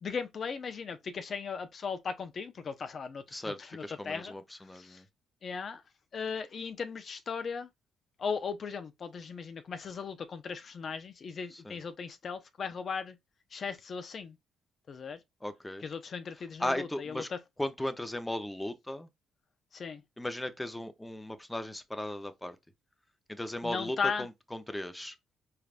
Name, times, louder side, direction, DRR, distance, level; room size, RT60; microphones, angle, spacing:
voice 1, 0.0-4.3 4.7-5.0 5.4-5.8 6.1-7.7 8.2-13.2 13.5-14.4 14.9-15.2 15.8-17.4 19.7-20.0 23.6-24.3, left 5 dB, 50° left, 0.5 m, -37 dB
voice 2, 3.3-5.1 11.5-11.8 15.4-15.8 16.6-17.3 17.6-19.1 20.2-22.6 23.3-25.2, left 1 dB, 10° left, 0.7 m, -37 dB
4.7 x 3.3 x 2.5 m
cardioid pair, 90°, 0 cm